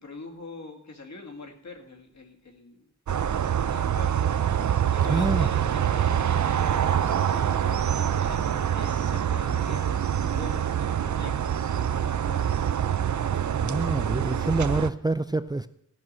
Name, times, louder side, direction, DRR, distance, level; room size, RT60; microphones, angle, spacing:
voice 1, 0.0-2.9 3.4-4.4 4.9-12.5, left 3 dB, 60° left, 2.2 m, -44 dB
sound 1, 3.1-14.9, right 9 dB, 65° right, 0.6 m, -25 dB
voice 2, 5.1-5.5 13.6-15.7, right 2 dB, 15° right, 0.4 m, -27 dB
15.0 x 5.9 x 7.6 m
wide cardioid pair, 70°, 31 cm